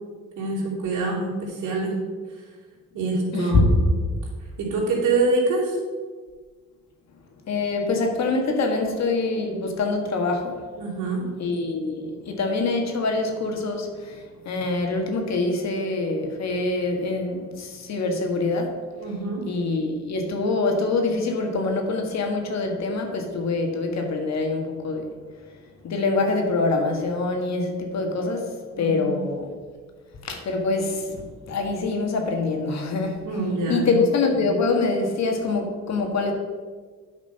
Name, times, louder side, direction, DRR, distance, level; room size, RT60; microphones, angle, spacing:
voice 1, 0.4-1.9 2.9-3.6 4.6-5.8 10.8-11.2 19.0-19.4 28.7-29.2 33.2-33.9, right 3 dB, 80° right, -6 dB, 2.9 m, -25 dB
voice 2, 3.3-3.7 7.5-10.7 11.4-18.8 19.5-25.1 25.5-25.6 25.8-29.5 30.2-33.2 33.7-36.3, left 3 dB, 60° left, 3 dB, 1.7 m, -25 dB
9.3 x 5.0 x 5.5 m, 1.5 s
cardioid pair, 90°, 30 cm